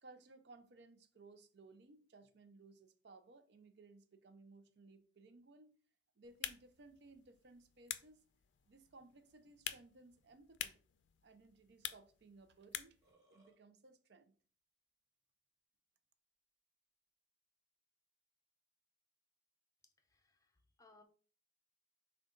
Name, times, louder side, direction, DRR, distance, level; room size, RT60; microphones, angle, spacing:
voice 1, 0.0-5.8 6.2-8.2 8.7-10.8 11.2-13.0 13.3-14.4, right 3 dB, 60° right, 0.5 m, -61 dB
sound 1, 6.2-13.1, left 11 dB, 75° left, 0.4 m, -49 dB
Burping eructation, 13.0-13.6, right 1 dB, 20° right, 1.1 m, -71 dB
voice 2, 20.0-21.0, left 3 dB, 20° left, 0.6 m, -67 dB
6.2 x 2.3 x 3.8 m
head